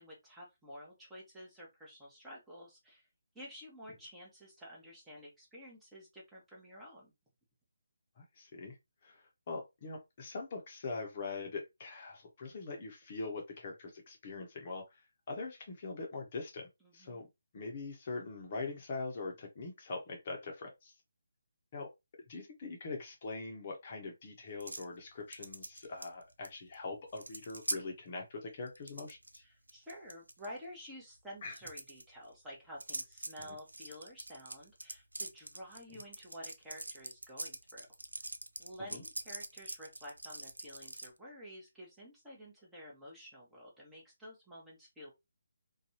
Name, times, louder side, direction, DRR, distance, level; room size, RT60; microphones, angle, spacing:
voice 1, 0.0-3.1 3.3-7.1 16.8-17.3 29.4-37.9 38.6-45.1, equal, 5° right, 1.0 m, -51 dB
voice 2, 8.2-8.8 9.0-15.0 15.3-17.3 17.5-20.9 21.7-21.9 22.3-29.4 31.4-31.5 33.4-33.6 38.8-39.0, left 3 dB, 40° left, 0.7 m, -43 dB
sound 1, 24.6-24.9 25.3-26.5 26.7-26.8 27.1-27.8 28.7-29.4 29.7-30.5 31.5-32.0 32.8-41.1, right 2 dB, 85° right, 0.4 m, -43 dB
2.6 x 2.3 x 2.8 m
figure-of-eight pair, 150°, 0 cm